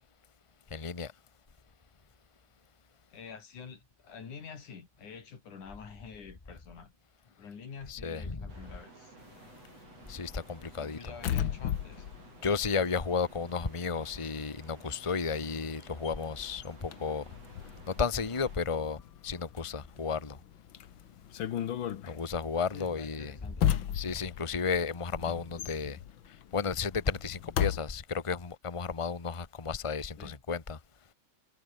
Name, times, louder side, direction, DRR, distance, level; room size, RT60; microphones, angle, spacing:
voice 1, 0.7-1.1 7.9-8.4 10.1-11.0 12.4-17.2 17.9-20.4 22.0-23.4 23.9-26.0 26.5-30.8, left 5 dB, 40° left, 0.4 m, -33 dB
voice 2, 3.1-6.9 7.3-9.2 10.8-12.1 22.7-24.0 30.2-30.4, left 6 dB, 85° left, 5.3 m, -48 dB
sound 1, 8.5-18.6, right 3 dB, 55° right, 8.0 m, -55 dB
sound 2, 9.2-13.6 13.9-27.8, left 10 dB, 55° left, 1.5 m, -36 dB
omnidirectional pair, 3.4 m